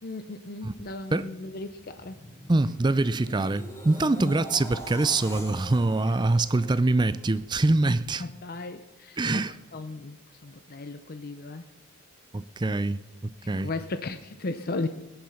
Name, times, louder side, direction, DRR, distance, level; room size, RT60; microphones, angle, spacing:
voice 1, 0.0-2.2 4.2-4.4 8.2-9.4 9.7-10.2 10.4-11.6 13.6-14.9, left 2 dB, 45° left, 0.6 m, -35 dB
sound 1, 1.4-7.6 8.1-8.3, equal, 10° left, 2.3 m, -45 dB
voice 2, 2.5-8.2 9.2-9.6 12.3-13.0 13.5-13.7, right 2 dB, 20° right, 0.4 m, -24 dB
17.5 x 10.5 x 5.8 m
head